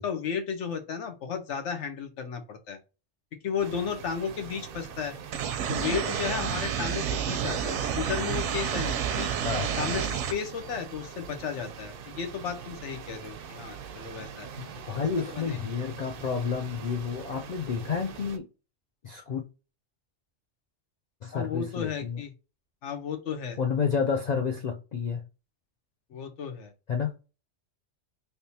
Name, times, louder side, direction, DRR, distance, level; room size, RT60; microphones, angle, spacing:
voice 1, 0.0-2.8 3.4-5.1 5.7-9.3 9.8-14.6 15.3-15.7 21.3-22.3 22.8-23.6 26.1-26.7, left 7 dB, 85° left, 1.0 m, -34 dB
sound 1, 3.6-18.4, right 7 dB, 60° right, 0.6 m, -44 dB
sound 2, 5.3-10.3, right 8 dB, 85° right, 0.9 m, -29 dB
voice 2, 14.6-18.5 19.0-19.4 21.2-22.2 23.6-25.2 26.9-27.1, left 6 dB, 60° left, 0.4 m, -30 dB
3.4 x 2.6 x 2.8 m
omnidirectional pair, 1.2 m